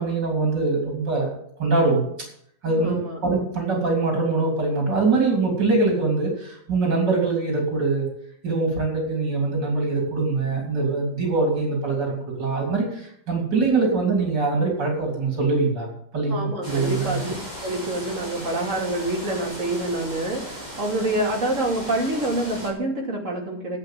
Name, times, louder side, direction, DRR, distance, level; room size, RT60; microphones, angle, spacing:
voice 1, 0.0-1.3 1.6-2.0 2.6-8.1 8.4-17.2, right 3 dB, 80° right, -1 dB, 3.7 m, -23 dB
voice 2, 2.6-3.2 16.3-17.3 17.6-23.8, right 1 dB, 45° right, -1 dB, 3.0 m, -27 dB
sound 1, 16.6-22.7, equal, 25° right, 5.0 m, -37 dB
11.5 x 8.0 x 7.6 m, 0.69 s
omnidirectional pair, 1.9 m